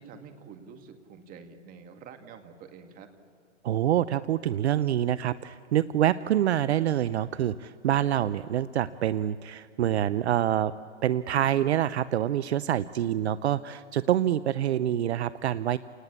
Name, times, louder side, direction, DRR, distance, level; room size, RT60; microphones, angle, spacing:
voice 1, 0.0-3.1 12.7-13.4, right 6 dB, 25° right, 6 dB, 2.1 m, -48 dB
voice 2, 3.6-10.7 11.0-15.8, right 11 dB, 65° right, 16 dB, 0.7 m, -26 dB
29.0 x 19.5 x 8.6 m, 2.5 s
hypercardioid pair, 130°, 36 cm